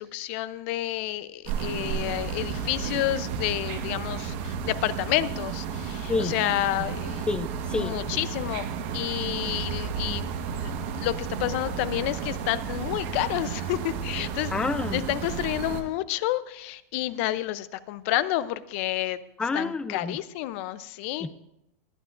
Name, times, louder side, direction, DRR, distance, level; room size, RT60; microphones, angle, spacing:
voice 1, 0.0-7.3 7.8-8.7 8.9-10.3 10.5-10.7 11.0-14.5 14.9-19.2 19.5-21.3, left 15 dB, 50° left, 16 dB, 0.6 m, -29 dB
sound 1, 1.5-15.8, right 6 dB, 50° right, 1.3 m, -32 dB
voice 2, 7.3-8.0 14.5-15.0 19.4-20.2 21.2-21.3, left 4 dB, 10° left, 14 dB, 0.5 m, -28 dB
20.5 x 11.5 x 2.5 m, 0.83 s
supercardioid pair, 150°, 9 cm